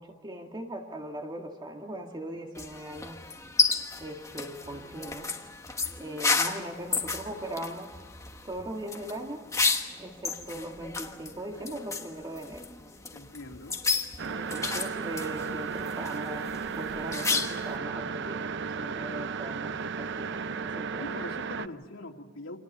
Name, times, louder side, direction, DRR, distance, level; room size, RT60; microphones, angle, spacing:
voice 1, 0.0-3.2 4.0-5.3 6.0-7.9 8.4-9.4 10.0-12.7 14.3-16.5 16.7-18.5 18.8-21.1, right 1 dB, 25° right, 2 dB, 2.0 m, -39 dB
sound 1, 2.5-17.8, left 4 dB, 15° left, 1.3 m, -32 dB
voice 2, 13.1-13.8 21.0-22.6, left 2 dB, 90° left, 1 dB, 2.7 m, -42 dB
sound 2, 14.2-21.7, right 5 dB, 60° right, 0.7 m, -34 dB
29.5 x 26.0 x 5.6 m, 1.5 s
head